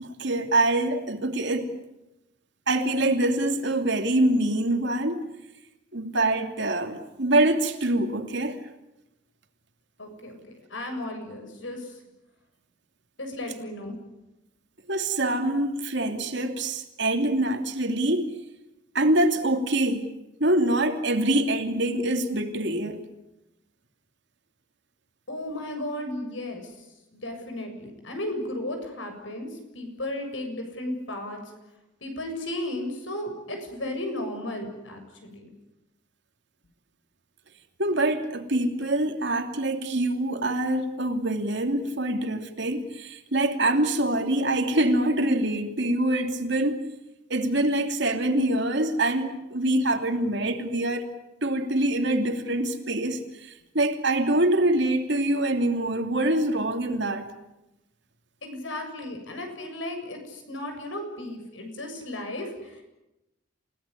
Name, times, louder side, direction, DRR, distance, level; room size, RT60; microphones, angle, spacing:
voice 1, 0.0-1.7 2.7-5.2 5.9-8.6 14.9-18.3 18.9-20.1 20.4-23.0 37.8-46.8 47.3-51.0 51.4-57.3, right 1 dB, 65° right, 5 dB, 2.8 m, -25 dB
voice 2, 10.0-10.4 10.7-12.0 13.2-14.0 25.3-26.7 27.1-29.5 29.7-31.4 32.0-35.5 58.4-62.8, left 1 dB, 75° left, 5 dB, 7.3 m, -34 dB
29.0 x 18.0 x 9.9 m, 0.94 s
head